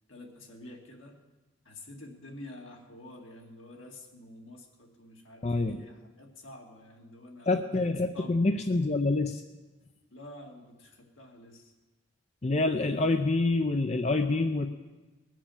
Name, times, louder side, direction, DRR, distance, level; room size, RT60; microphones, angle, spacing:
voice 1, 0.1-1.2 1.6-8.4 10.1-11.7, left 1 dB, 80° left, 1 dB, 2.2 m, -48 dB
voice 2, 5.4-5.8 7.5-9.4 12.4-14.7, left 2 dB, 35° left, 6 dB, 0.5 m, -26 dB
19.5 x 7.4 x 7.1 m, 1.2 s
head